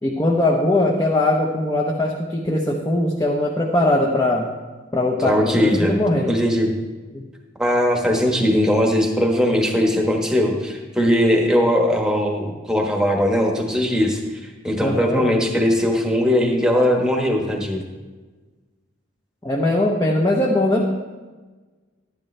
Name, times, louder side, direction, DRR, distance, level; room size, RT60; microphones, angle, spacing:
voice 1, 0.0-4.5 4.9-6.3 7.1-7.2 14.8-15.3 19.4-20.9, left 1 dB, 15° left, -1 dB, 0.8 m, -20 dB
voice 2, 5.2-5.9 6.2-6.7 7.6-17.8, equal, 5° right, 1 dB, 1.2 m, -19 dB
12.0 x 10.5 x 3.3 m, 1.3 s
head